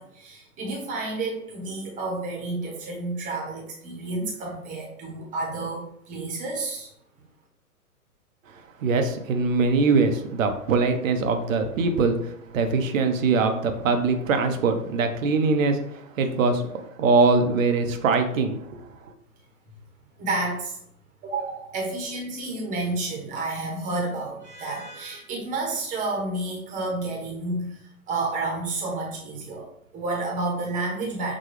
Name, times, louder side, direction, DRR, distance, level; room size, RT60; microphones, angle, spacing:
voice 1, 0.0-6.9 20.2-20.8 21.2-31.4, right 2 dB, 15° right, -1 dB, 1.0 m, -30 dB
voice 2, 8.8-12.2 12.5-16.6 17.0-18.6, right 4 dB, 60° right, 6 dB, 0.8 m, -22 dB
6.1 x 2.3 x 3.1 m, 0.72 s
hypercardioid pair, 125°, 45 cm